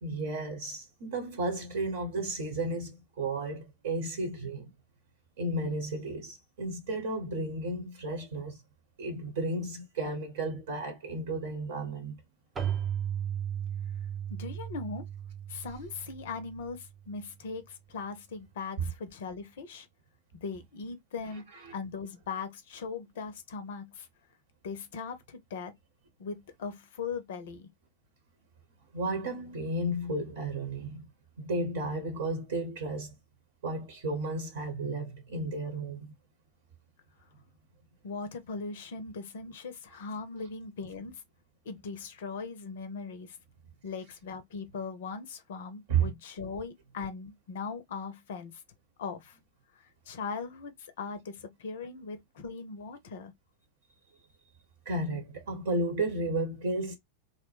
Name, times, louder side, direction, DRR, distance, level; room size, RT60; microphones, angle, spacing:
voice 1, 0.0-4.7 5.4-8.6 9.0-12.2 21.7-21.8 28.9-31.1 31.4-33.1 33.6-36.1 45.9-46.1 54.8-57.0, right 2 dB, 55° right, 1.0 m, -33 dB
Keyboard (musical), 12.6-17.1, right 9 dB, 20° right, 0.5 m, -36 dB
voice 2, 14.3-15.0 15.5-19.9 20.3-24.1 24.6-25.7 26.2-27.7 38.0-41.2 41.6-43.4 43.8-48.6 49.0-49.4 49.7-53.3, left 4 dB, 55° left, 0.5 m, -39 dB
2.7 x 2.0 x 3.2 m
figure-of-eight pair, 90°, 0 cm